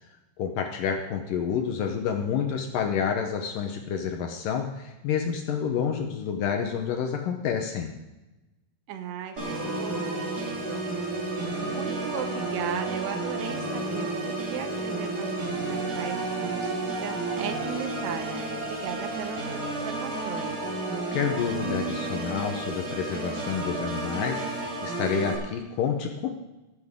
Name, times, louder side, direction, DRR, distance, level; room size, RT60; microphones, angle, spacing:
voice 1, 0.4-7.9 21.1-26.3, left 7 dB, 75° left, 4 dB, 2.1 m, -29 dB
voice 2, 8.9-10.8 11.5-20.6, right 8 dB, 85° right, 6 dB, 3.0 m, -37 dB
Organ, 9.4-25.4, right 2 dB, 30° right, 2.2 m, -31 dB
19.0 x 8.1 x 3.6 m, 1.0 s
omnidirectional pair, 4.7 m